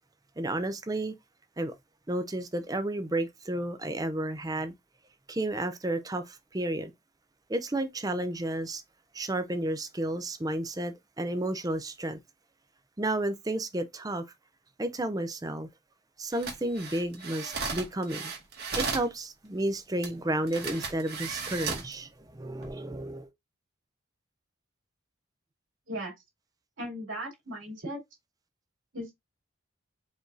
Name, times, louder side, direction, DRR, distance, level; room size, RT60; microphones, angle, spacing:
voice 1, 0.4-1.1 1.6-1.7 2.1-4.7 5.3-6.9 7.5-8.8 9.1-12.2 13.0-14.2 14.8-15.7 16.2-18.3 18.8-23.3, right 1 dB, 20° right, 0.5 m, -32 dB
sound 1, 16.3-19.1 20.0-20.1 20.5-21.9 22.5-22.7, right 4 dB, 50° right, 1.7 m, -35 dB
voice 2, 26.8-28.0 28.9-29.1, equal, 70° right, 2.7 m, -37 dB
5.0 x 3.7 x 2.7 m
head